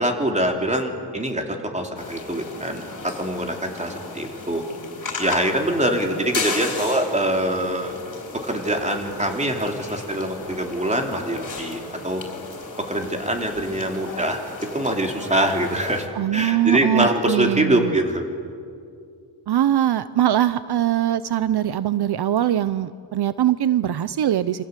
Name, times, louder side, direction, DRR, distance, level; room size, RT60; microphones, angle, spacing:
voice 1, 0.0-4.6 5.2-7.9 8.3-12.2 12.8-16.0 16.3-18.2, right 1 dB, 15° right, 3 dB, 3.2 m, -24 dB
sound 1, 1.9-16.1, left 3 dB, 50° left, 4.8 m, -35 dB
voice 2, 16.1-17.9 19.5-24.6, right 11 dB, 70° right, 15 dB, 0.7 m, -22 dB
28.5 x 25.5 x 8.3 m, 2.4 s
wide cardioid pair, 135°, 40 cm